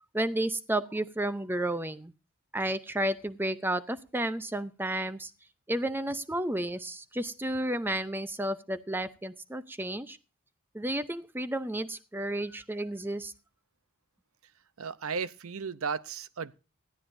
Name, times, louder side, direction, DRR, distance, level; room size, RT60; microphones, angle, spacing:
voice 1, 0.1-2.1 2.5-5.3 5.7-10.2 10.7-13.3, right 1 dB, 10° right, 0.6 m, -32 dB
voice 2, 14.8-16.5, right 5 dB, 75° right, 0.7 m, -35 dB
19.0 x 12.5 x 2.6 m
head